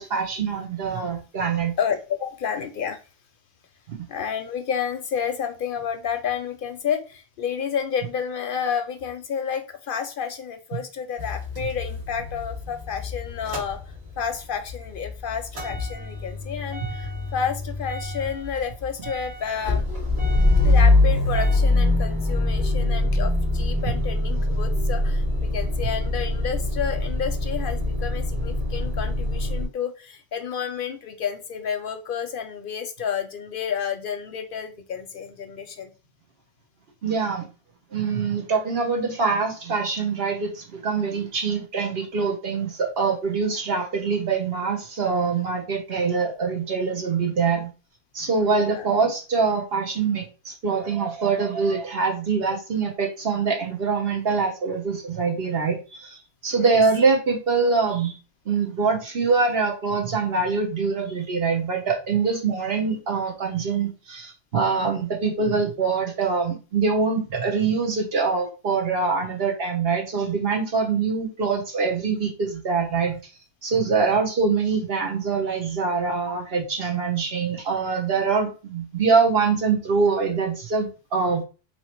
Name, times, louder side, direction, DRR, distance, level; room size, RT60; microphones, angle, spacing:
voice 1, 0.0-1.7 3.9-4.0 37.0-37.4 37.9-47.7 48.1-56.2 56.4-58.1 58.5-73.2 73.6-81.4, right 5 dB, 65° right, 1 dB, 1.2 m, -24 dB
voice 2, 1.8-3.0 4.1-19.8 20.6-35.9 48.6-48.9 56.6-56.8 73.9-74.2, left 7 dB, 60° left, 8 dB, 0.6 m, -30 dB
Motor vehicle (road) / Engine starting / Idling, 11.2-14.4 14.7-29.6, left 2 dB, 80° right, 1.9 m, -24 dB
3.0 x 2.8 x 4.3 m, 0.33 s
omnidirectional pair, 1.1 m